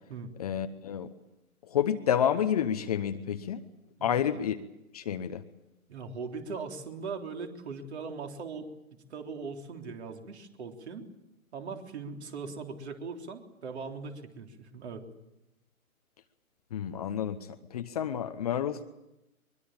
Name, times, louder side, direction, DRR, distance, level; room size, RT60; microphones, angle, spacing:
voice 1, 0.4-1.1 1.7-3.6 4.0-4.6 4.9-5.4 16.7-18.8, left 9 dB, 25° left, 9 dB, 0.9 m, -29 dB
voice 2, 5.9-11.1 11.5-15.0, right 4 dB, 50° right, 4 dB, 3.7 m, -40 dB
23.0 x 22.5 x 8.8 m, 0.93 s
figure-of-eight pair, 145°, 43 cm